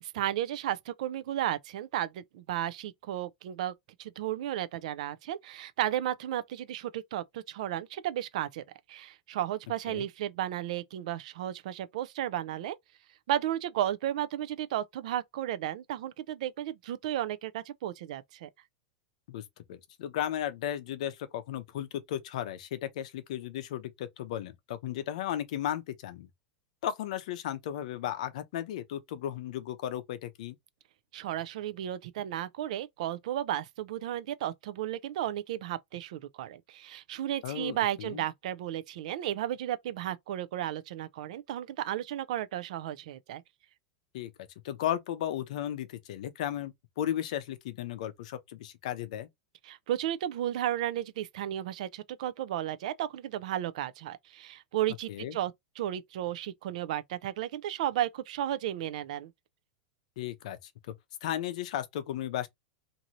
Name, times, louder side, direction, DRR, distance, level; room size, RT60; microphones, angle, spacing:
voice 1, 0.0-3.7 4.0-8.6 8.9-12.8 13.3-18.5 31.1-43.4 49.6-59.3, right 12 dB, 60° right, 0.4 m, -34 dB
voice 2, 19.7-26.3 26.8-30.6 37.4-38.2 44.1-44.3 44.6-49.3 55.1-55.4 60.2-60.6 60.9-61.0 61.2-62.5, left 11 dB, 60° left, 0.6 m, -35 dB
2.6 x 2.6 x 2.9 m
supercardioid pair, 175°, 4 cm